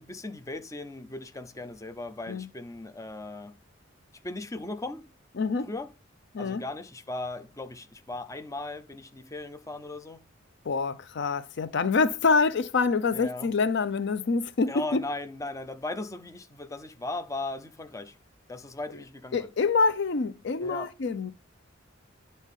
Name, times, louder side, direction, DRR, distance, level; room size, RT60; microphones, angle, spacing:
voice 1, 0.0-3.6 4.2-5.0 5.6-5.9 6.4-10.2 13.1-13.5 14.7-18.2 18.5-19.5 20.6-20.9, left 2 dB, 15° left, 0.5 m, -37 dB
voice 2, 5.4-5.7 6.3-6.6 10.6-15.0 19.3-21.3, left 4 dB, 60° left, 0.5 m, -26 dB
9.8 x 4.1 x 3.7 m
head